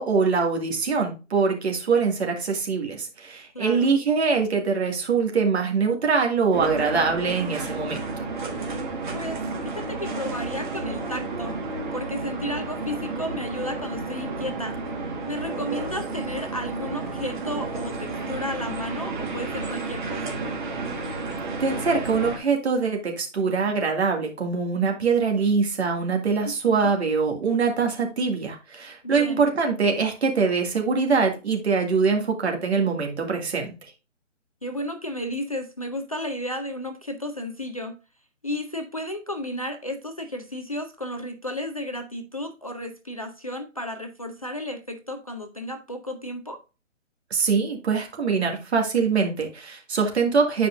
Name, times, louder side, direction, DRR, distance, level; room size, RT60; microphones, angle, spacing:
voice 1, 0.0-8.0 21.6-33.9 47.3-50.7, right 5 dB, 60° right, 2.0 m, -23 dB
voice 2, 3.5-3.9 9.1-11.5 11.9-14.8 15.3-20.4 26.4-26.9 29.0-29.4 34.6-38.0 38.4-46.6, left 1 dB, 30° left, 0.4 m, -33 dB
sound 1, 6.5-22.4, right 3 dB, 40° right, 1.4 m, -31 dB
9.3 x 5.0 x 2.5 m
hypercardioid pair, 155°, 38 cm